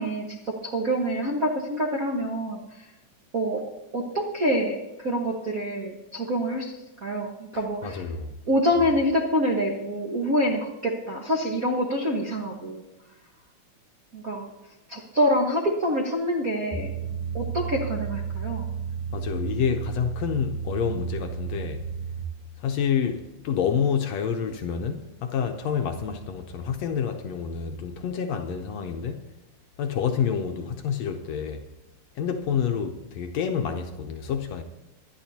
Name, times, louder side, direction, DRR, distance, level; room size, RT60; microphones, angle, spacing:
voice 1, 0.0-2.9 3.3-8.0 8.5-12.9 14.1-14.5 14.9-16.9 17.3-18.7, equal, 50° right, 1.0 m, -26 dB
voice 2, 7.8-8.3 19.1-21.9 22.6-29.2 29.8-31.7 32.1-34.6, left 7 dB, 70° left, 1.7 m, -28 dB
sound 1, 16.7-22.2, right 7 dB, 5° right, 2.1 m, -32 dB
24.0 x 11.0 x 2.8 m
omnidirectional pair, 3.6 m